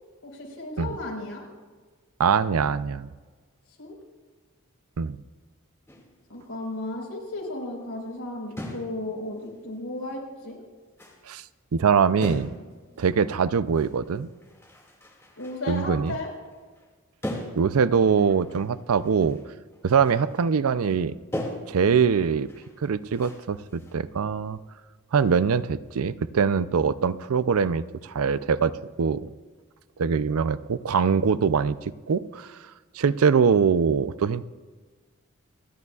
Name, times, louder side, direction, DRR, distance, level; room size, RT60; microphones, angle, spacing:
voice 1, 0.2-1.4 3.8-4.0 6.3-10.6 15.4-16.3, left 2 dB, 85° left, -1 dB, 4.6 m, -34 dB
voice 2, 2.2-3.1 5.0-5.2 11.3-11.4 11.7-12.5 13.0-14.3 15.7-16.2 17.6-19.4 19.8-22.5 22.8-24.6 25.1-29.3 30.0-32.6 32.9-34.5, right 6 dB, 85° right, 15 dB, 0.5 m, -23 dB
sound 1, 5.9-6.2 8.6-9.1 9.3-9.5 10.4-10.5 11.0-11.3 12.2-12.8 13.0-13.2 13.7-16.9 17.2-19.5 19.7-20.5 20.8-21.0 21.3-23.9, left 1 dB, 10° left, 2.1 m, -39 dB
28.5 x 11.0 x 2.4 m, 1.4 s
head